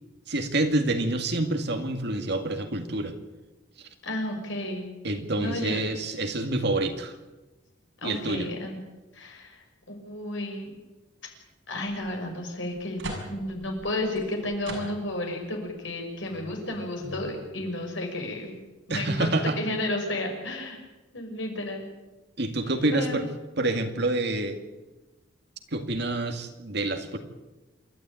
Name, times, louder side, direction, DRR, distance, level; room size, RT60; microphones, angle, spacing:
voice 1, 0.3-3.2 5.0-7.1 8.0-8.5 18.9-19.6 22.4-23.3 23.6-24.6 25.7-27.2, right 2 dB, 55° right, 6 dB, 2.3 m, -27 dB
voice 2, 4.0-4.9 5.4-5.9 8.0-8.8 9.1-10.8 11.7-13.0 13.3-18.6 18.9-19.3 19.6-20.8 21.1-21.8 22.9-23.2, left 1 dB, 70° left, 2 dB, 6.0 m, -32 dB
sound 1, 12.0-12.1 12.6-15.3 15.8-15.9 16.3-17.5, right 1 dB, 70° right, 6.4 m, -41 dB
27.5 x 13.0 x 9.1 m, 1.1 s
head